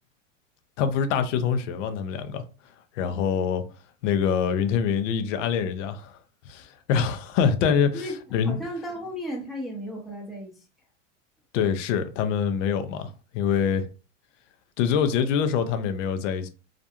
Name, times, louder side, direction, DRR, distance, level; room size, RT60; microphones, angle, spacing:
voice 1, 0.8-2.4 3.0-3.6 4.0-6.2 6.5-8.0 8.3-8.6 11.5-13.9 14.8-16.5, left 7 dB, 70° left, 0.6 m, -25 dB
voice 2, 8.5-10.6, equal, ahead, 0.6 m, -34 dB
2.4 x 2.2 x 2.8 m
hypercardioid pair, 105°, 38 cm